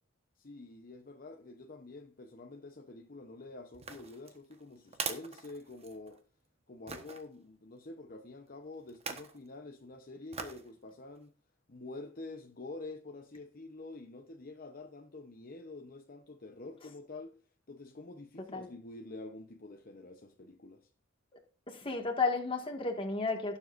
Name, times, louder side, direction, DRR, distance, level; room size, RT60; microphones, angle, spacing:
voice 1, 0.4-6.2 6.7-11.3 11.7-17.3 17.7-20.9, left 2 dB, 50° left, 0.9 m, -47 dB
sound 1, 3.7-6.2 6.9-7.2 8.9-9.4 10.3-10.7 11.2-11.3, right 5 dB, 30° right, 1.2 m, -41 dB
voice 2, 21.7-23.6, left 3 dB, 25° left, 1.9 m, -32 dB
17.5 x 7.5 x 2.6 m
head